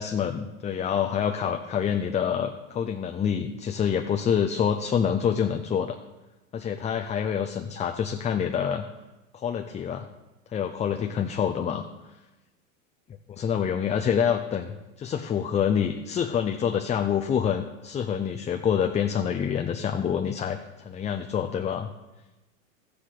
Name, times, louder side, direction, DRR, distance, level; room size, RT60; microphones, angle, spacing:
voice 1, 0.0-6.0 6.5-8.9 9.3-10.1 10.5-11.9 13.4-21.9, left 8 dB, 15° left, 5 dB, 0.5 m, -27 dB
13.0 x 10.0 x 4.0 m, 1.1 s
hypercardioid pair, 105°, 41 cm